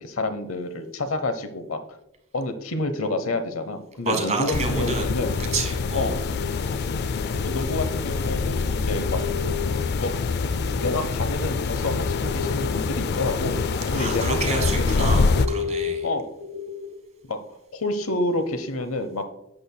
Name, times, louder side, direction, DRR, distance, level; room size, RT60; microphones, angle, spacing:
voice 1, 0.0-1.8 2.3-5.4 5.9-6.2 7.4-9.2 10.0-10.1 10.8-13.6 13.9-15.1 16.0-16.3 17.3-17.4 17.7-19.2, left 2 dB, 80° left, 10 dB, 0.8 m, -28 dB
voice 2, 4.0-5.1 5.5-6.2 13.9-16.1, right 4 dB, 35° right, 4 dB, 1.2 m, -29 dB
sound 1, 4.5-15.5, left 4 dB, 50° left, 0.4 m, -25 dB
sound 2, 5.1-10.9 11.2-17.1, left 6 dB, 75° right, 1.8 m, -35 dB
11.0 x 8.0 x 2.2 m, 0.83 s
head